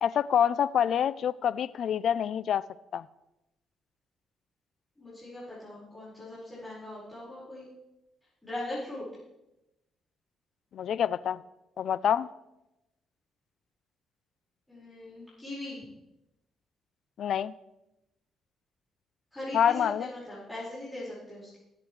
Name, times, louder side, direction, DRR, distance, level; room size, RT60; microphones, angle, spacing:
voice 1, 0.0-2.6 2.9-3.1 10.7-11.4 11.8-12.3 17.2-17.5 19.5-20.1, left 9 dB, 65° left, 19 dB, 0.4 m, -26 dB
voice 2, 5.0-7.7 8.4-9.0 14.7-15.8 19.3-21.6, left 1 dB, 10° left, -10 dB, 5.2 m, -40 dB
19.0 x 8.8 x 3.3 m, 0.92 s
cardioid pair, 90°, 0 cm